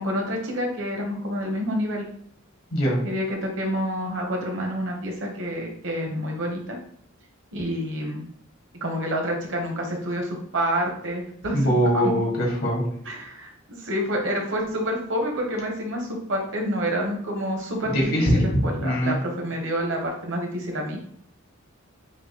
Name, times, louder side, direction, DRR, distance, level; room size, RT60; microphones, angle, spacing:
voice 1, 0.0-2.1 3.0-6.8 7.5-8.2 8.8-12.1 13.0-21.0, equal, 65° right, 1 dB, 1.0 m, -28 dB
voice 2, 11.5-12.8 17.9-18.5 18.8-19.2, equal, 80° left, -3 dB, 1.4 m, -22 dB
5.9 x 2.2 x 2.9 m, 0.67 s
head